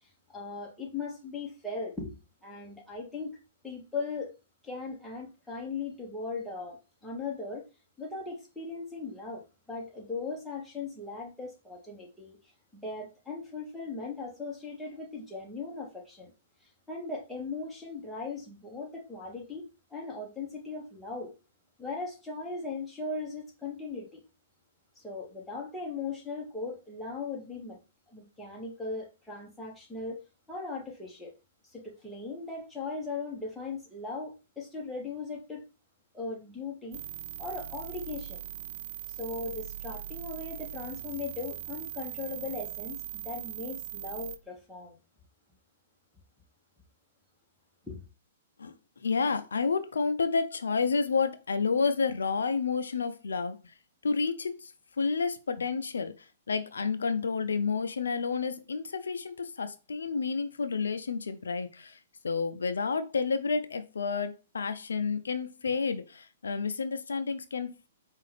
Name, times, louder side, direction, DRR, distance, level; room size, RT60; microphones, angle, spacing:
voice 1, 0.3-3.3 3.6-4.3 4.6-7.6 8.0-12.4 12.7-16.3 16.9-21.3 21.8-24.2 25.0-27.8 28.1-30.2 30.5-31.3 31.7-35.6 36.1-37.0 37.4-38.4 39.1-45.0 47.8-48.0, left 3 dB, 5° left, 1.2 m, -38 dB
sound 1, 36.9-44.4, right 12 dB, 50° right, 0.5 m, -40 dB
voice 2, 49.0-53.6 54.0-54.7 55.0-56.1 56.5-62.0 62.2-67.9, left 5 dB, 90° left, 0.4 m, -30 dB
4.7 x 2.4 x 3.3 m
hypercardioid pair, 135°, 0 cm